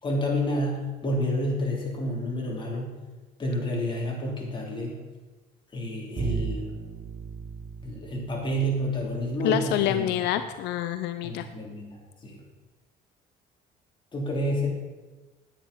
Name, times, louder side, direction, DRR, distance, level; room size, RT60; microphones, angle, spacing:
voice 1, 0.0-3.0 3.4-5.0 5.7-6.7 7.8-10.1 11.2-12.4 14.1-14.7, equal, 30° left, -2 dB, 3.6 m, -29 dB
Bowed string instrument, 6.2-9.2, right 5 dB, 35° right, 1.4 m, -35 dB
voice 2, 9.4-11.5, left 11 dB, 85° left, 10 dB, 0.6 m, -27 dB
10.0 x 9.3 x 5.5 m, 1.2 s
cardioid pair, 110°, 17 cm